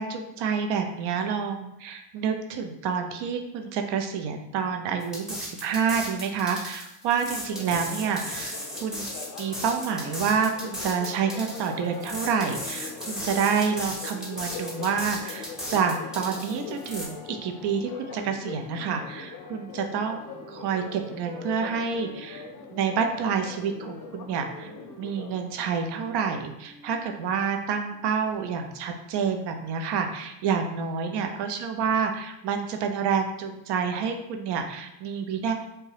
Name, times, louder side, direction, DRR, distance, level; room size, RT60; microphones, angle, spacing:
voice 1, 0.0-9.1 9.4-20.2 20.5-24.7 25.0-35.5, right 6 dB, 55° right, 5 dB, 0.6 m, -28 dB
sound 1, 5.0-17.1, equal, ahead, 0.7 m, -36 dB
Church bell, 7.5-25.8, left 5 dB, 40° left, 0.4 m, -42 dB
Wind instrument woodwind instrument, 19.2-22.5 22.8-26.4 26.6-27.2, equal, 25° right, 1.0 m, -48 dB
2.7 x 2.2 x 3.2 m, 0.88 s
supercardioid pair, 80°, 48 cm